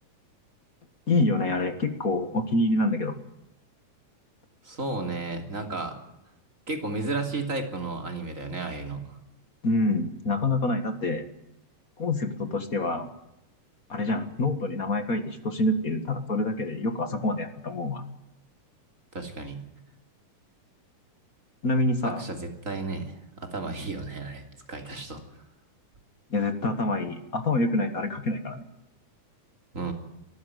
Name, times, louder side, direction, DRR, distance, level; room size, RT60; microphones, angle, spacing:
voice 1, 1.1-3.1 9.6-11.2 12.0-13.1 13.9-18.0 21.6-22.2 26.3-28.6, left 2 dB, 35° left, 9 dB, 1.6 m, -26 dB
voice 2, 4.6-6.0 6.7-9.2 19.1-19.6 22.0-24.4 24.7-25.2 29.7-29.9, right 3 dB, 25° right, 5 dB, 3.2 m, -33 dB
24.0 x 14.5 x 9.3 m, 0.86 s
omnidirectional pair, 3.6 m